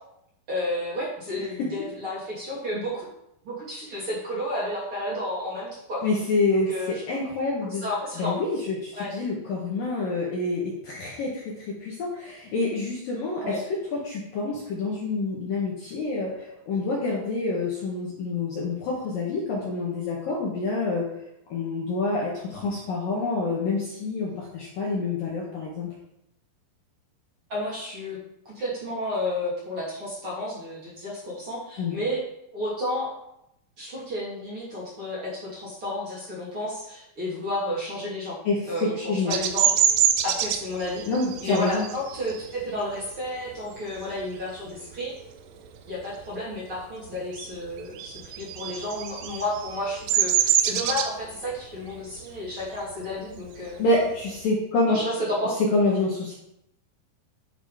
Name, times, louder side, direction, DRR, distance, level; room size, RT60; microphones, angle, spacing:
voice 1, 0.5-3.1 3.4-6.0 6.5-7.0 7.6-8.4 9.0-9.1 13.4-13.6 27.5-28.2 28.4-32.2 32.5-33.1 33.8-38.4 38.7-39.7 40.2-41.0 41.4-45.1 45.9-53.8 54.9-55.5, left 1 dB, 30° right, -7 dB, 3.2 m, -31 dB
voice 2, 6.0-7.9 8.2-21.1 21.5-25.9 31.8-32.0 38.4-39.3 41.1-41.9 53.8-55.0 55.7-56.3, left 3 dB, 60° left, -4 dB, 2.7 m, -27 dB
Bird vocalization bird call bird song, 39.3-44.5 44.9-45.3 45.6-46.8 47.1-54.4, right 9 dB, 80° right, 3.3 m, -26 dB
11.0 x 6.1 x 5.1 m, 0.81 s
omnidirectional pair, 5.7 m